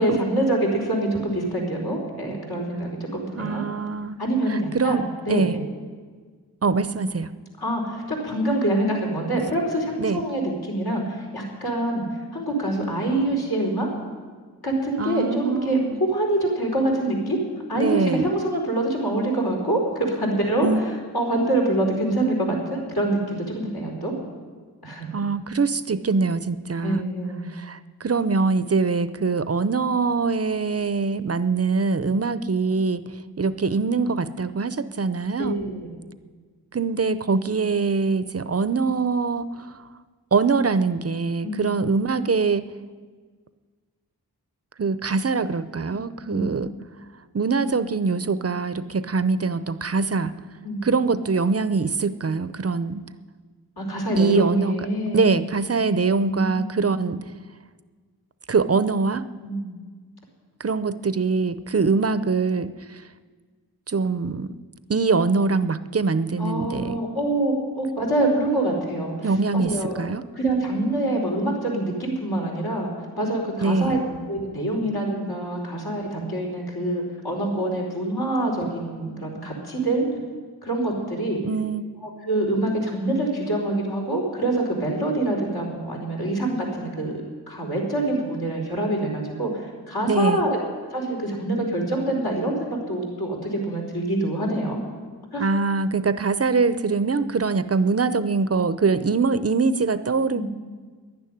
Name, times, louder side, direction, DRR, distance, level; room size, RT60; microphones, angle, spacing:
voice 1, 0.0-3.6 4.2-5.6 7.6-13.9 14.6-17.4 17.7-20.7 21.1-24.1 24.8-25.1 26.8-27.5 35.4-35.9 41.4-41.8 46.3-46.5 50.6-50.9 53.8-55.4 56.2-57.0 59.4-59.7 66.4-70.0 70.3-72.9 73.2-74.0 74.3-80.1 80.6-81.4 82.2-90.6 90.9-94.8 95.3-95.5 100.3-100.4, right 1 dB, 70° left, -2 dB, 4.7 m, -25 dB
voice 2, 3.4-4.2 4.5-5.0 5.3-5.6 6.6-7.3 10.0-10.2 15.0-16.0 17.7-18.3 20.6-20.8 25.1-27.1 27.5-33.0 33.4-35.6 36.7-39.7 40.3-42.7 44.8-46.7 47.3-50.3 50.8-53.0 54.1-54.8 55.1-57.2 58.5-59.3 60.6-62.7 63.9-64.5 64.9-67.0 69.2-70.2 73.6-74.0 81.4-81.8 90.1-90.4 95.4-100.4, right 4 dB, 40° right, 14 dB, 0.6 m, -23 dB
11.0 x 10.5 x 10.0 m, 1.5 s
cardioid pair, 50°, 39 cm